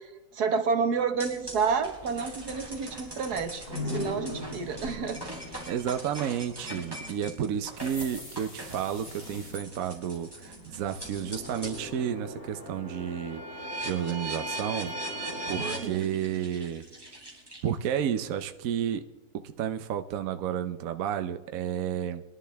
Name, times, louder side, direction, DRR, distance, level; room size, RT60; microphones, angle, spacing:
voice 1, 0.3-5.2 15.6-16.1, right 5 dB, 85° right, 7 dB, 1.8 m, -30 dB
sound 1, 1.2-11.9 12.3-18.0, right 1 dB, 15° right, 3.4 m, -41 dB
sound 2, 3.7-17.5, left 1 dB, 65° left, 3.9 m, -42 dB
voice 2, 5.7-16.8 17.6-19.0 19.3-22.2, right 9 dB, 65° right, 8 dB, 1.1 m, -32 dB
sound 3, 7.7-9.6, left 1 dB, 30° left, 2.5 m, -45 dB
23.5 x 11.5 x 3.4 m, 1.1 s
omnidirectional pair, 1.6 m